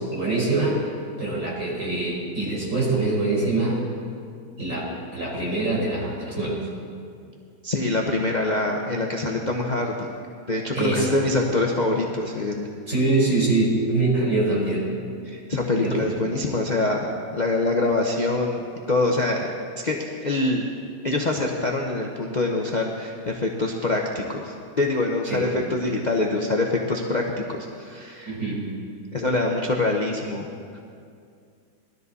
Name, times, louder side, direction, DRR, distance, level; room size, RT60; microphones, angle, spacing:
voice 1, 0.1-0.8 1.2-3.8 4.6-6.6 10.7-11.2 12.9-14.8 15.8-16.2 25.3-25.5 28.2-28.6, right 2 dB, 50° right, -5 dB, 4.7 m, -24 dB
voice 2, 7.6-10.1 10.5-12.7 15.2-17.1 17.3-18.6 18.9-19.5 19.8-20.6 21.0-28.3 29.1-30.5 30.7-30.8, left 2 dB, 35° left, 0 dB, 0.9 m, -25 dB
20.0 x 13.0 x 4.1 m, 2.4 s
omnidirectional pair, 1.8 m